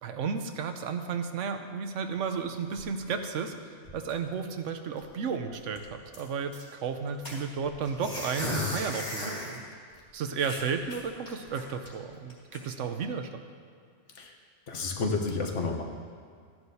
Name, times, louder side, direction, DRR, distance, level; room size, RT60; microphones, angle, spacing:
voice 1, 0.0-9.6 10.1-13.4, right 6 dB, 90° right, 7 dB, 1.1 m, -33 dB
sound 1, 2.2-3.5 3.8-4.3 4.7-4.8 5.0-5.2 5.5-6.6 7.2-9.6 9.9-10.0 10.4-11.9 12.3-12.6, left 1 dB, 35° left, 2.3 m, -37 dB
voice 2, 14.7-15.8, left 3 dB, 75° left, 2 dB, 1.3 m, -30 dB
13.0 x 10.5 x 2.8 m, 2.1 s
omnidirectional pair, 1.2 m